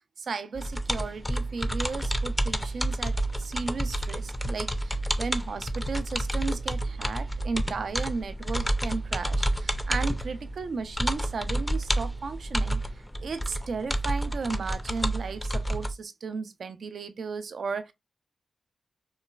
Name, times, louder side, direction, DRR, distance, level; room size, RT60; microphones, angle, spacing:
voice 1, 0.2-17.9, right 4 dB, 70° right, 0.3 m, -35 dB
sound 1, 0.6-15.9, right 1 dB, 5° left, 0.4 m, -30 dB
3.0 x 2.3 x 2.2 m
cardioid pair, 65°, 0 cm